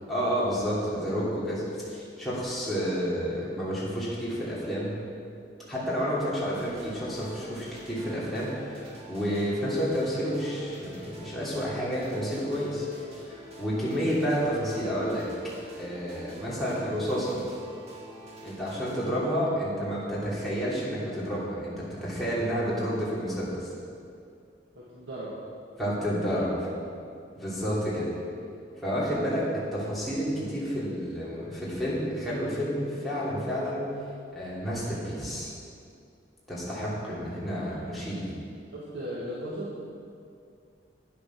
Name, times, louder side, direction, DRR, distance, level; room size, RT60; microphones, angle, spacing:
voice 1, 0.1-4.9 5.7-12.9 13.2-15.2 15.8-17.4 18.4-23.7 25.8-26.7 27.4-28.1 28.8-33.8 34.3-35.5 36.5-38.4, equal, ahead, -9 dB, 3.0 m, -30 dB
sound 1, 6.5-19.2, right 1 dB, 35° right, 2.1 m, -47 dB
voice 2, 24.7-25.4 37.5-37.9 38.7-39.8, right 1 dB, 85° right, -8 dB, 1.8 m, -37 dB
9.5 x 8.6 x 6.2 m, 2.4 s
head